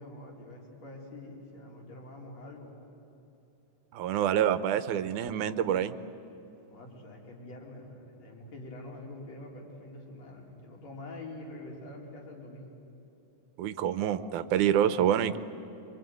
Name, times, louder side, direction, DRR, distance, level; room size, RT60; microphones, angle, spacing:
voice 1, 0.0-2.7 6.7-12.8, left 2 dB, 60° left, 0 dB, 5.0 m, -45 dB
voice 2, 3.9-6.0 13.6-15.4, right 10 dB, 90° right, 13 dB, 2.4 m, -27 dB
25.5 x 24.5 x 9.3 m, 2.9 s
omnidirectional pair, 3.4 m